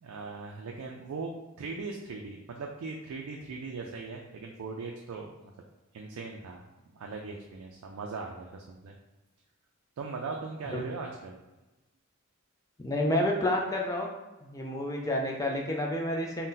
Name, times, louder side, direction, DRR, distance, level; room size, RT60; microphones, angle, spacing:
voice 1, 0.0-5.5 5.9-6.6 6.9-9.0 10.0-11.4, right 4 dB, 85° right, 0 dB, 0.4 m, -39 dB
voice 2, 12.8-14.1 14.4-16.5, left 1 dB, 15° left, 0 dB, 0.3 m, -29 dB
2.6 x 2.1 x 3.7 m, 1.1 s
head